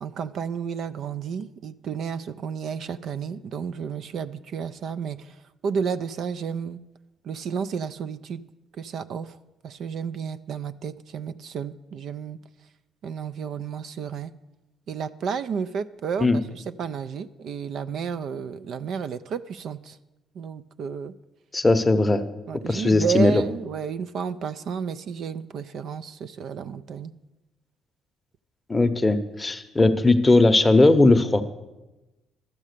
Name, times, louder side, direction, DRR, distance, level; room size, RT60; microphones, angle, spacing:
voice 1, 0.0-6.8 7.2-8.4 8.8-9.4 9.6-12.4 13.0-14.3 14.9-16.3 16.5-20.0 20.4-21.1 22.5-27.1, right 6 dB, 65° right, 12 dB, 0.4 m, -31 dB
voice 2, 21.5-22.2 22.7-23.4 28.7-31.4, left 2 dB, 15° left, 8 dB, 0.7 m, -18 dB
12.0 x 7.4 x 6.6 m, 1.0 s
cardioid pair, 105°, 0 cm